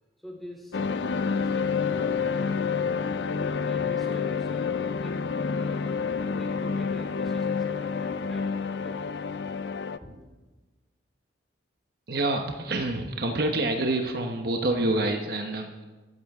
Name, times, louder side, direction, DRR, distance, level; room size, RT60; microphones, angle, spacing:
voice 1, 0.2-2.9 3.4-9.3 10.0-10.3, equal, ahead, -3 dB, 4.4 m, -46 dB
sound 1, 0.7-10.0, left 5 dB, 70° left, 0.5 m, -28 dB
voice 2, 12.1-15.8, right 2 dB, 55° right, 3 dB, 1.1 m, -27 dB
23.0 x 13.5 x 3.7 m, 1.2 s
head